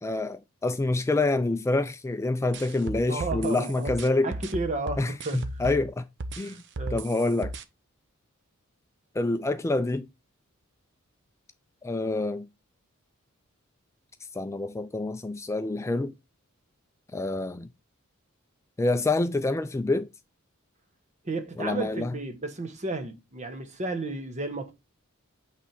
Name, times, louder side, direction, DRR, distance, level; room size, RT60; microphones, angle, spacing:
voice 1, 0.0-4.3 5.0-6.1 6.4-6.6 6.9-7.5 9.2-10.1 11.8-12.5 14.3-16.1 17.1-17.7 18.8-20.1 21.6-22.1, left 2 dB, 15° left, 0.3 m, -27 dB
sound 1, 2.5-5.9 6.2-7.6, right 2 dB, 55° right, 0.7 m, -35 dB
voice 2, 3.1-3.9 4.2-5.6 6.5-7.1 21.2-24.7, right 2 dB, 35° right, 1.1 m, -33 dB
8.4 x 3.4 x 4.5 m
head